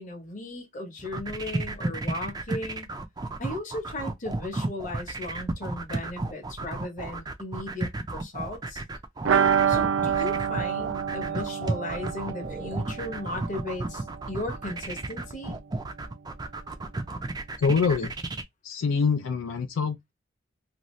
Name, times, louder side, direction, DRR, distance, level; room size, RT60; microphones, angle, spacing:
voice 1, 0.0-2.9 3.4-8.8 9.7-15.6, left 1 dB, 40° left, 0.8 m, -36 dB
sound 1, 1.0-18.4, right 2 dB, 20° right, 0.4 m, -33 dB
sound 2, 9.2-14.9 15.1-15.2 15.5-15.6, right 7 dB, 80° right, 0.5 m, -28 dB
voice 2, 17.6-18.1 18.6-20.1, left 5 dB, 80° left, 0.4 m, -25 dB
2.6 x 2.3 x 3.0 m
head